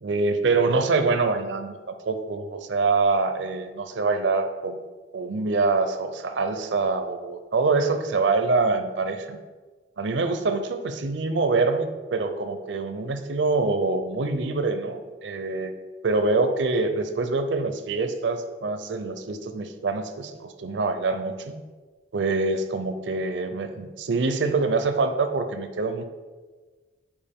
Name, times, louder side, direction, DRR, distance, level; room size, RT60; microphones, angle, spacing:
voice 1, 0.0-4.8 5.1-9.4 10.0-15.7 16.0-21.6 22.1-26.1, right 3 dB, 70° right, 8 dB, 0.6 m, -25 dB
8.9 x 4.6 x 3.6 m, 1.3 s
head